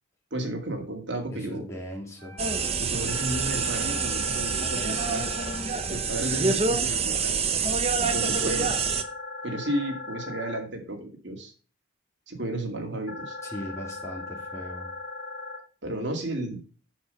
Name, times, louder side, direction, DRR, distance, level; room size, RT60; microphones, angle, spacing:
voice 1, 0.3-1.7 2.8-5.3 5.9-9.0 9.4-11.5 12.3-13.4 15.8-16.6, right 1 dB, 65° right, 2 dB, 2.4 m, -33 dB
voice 2, 1.3-2.5 13.4-14.9, equal, 15° left, -2 dB, 2.9 m, -39 dB
Wind instrument woodwind instrument, 2.2-7.3, left 2 dB, 5° right, 3.3 m, -48 dB
sound 1, 2.4-9.0, right 5 dB, 30° right, 0.8 m, -27 dB
sound 2, 3.1-5.6 8.1-10.6 13.1-15.6, left 3 dB, 60° left, 2.3 m, -38 dB
7.7 x 6.8 x 5.6 m, 0.38 s
head